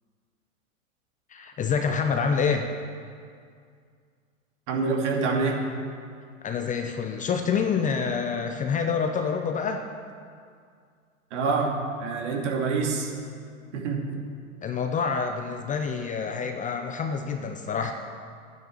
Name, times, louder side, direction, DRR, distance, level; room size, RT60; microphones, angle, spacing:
voice 1, 1.3-2.7 6.4-9.8 14.6-17.9, left 6 dB, 20° left, 5 dB, 0.7 m, -27 dB
voice 2, 4.7-5.6 11.3-11.7 12.0-13.1 13.7-14.2, right 4 dB, 55° right, 0 dB, 2.7 m, -26 dB
12.0 x 9.6 x 6.7 m, 2.2 s
figure-of-eight pair, 100°, 42 cm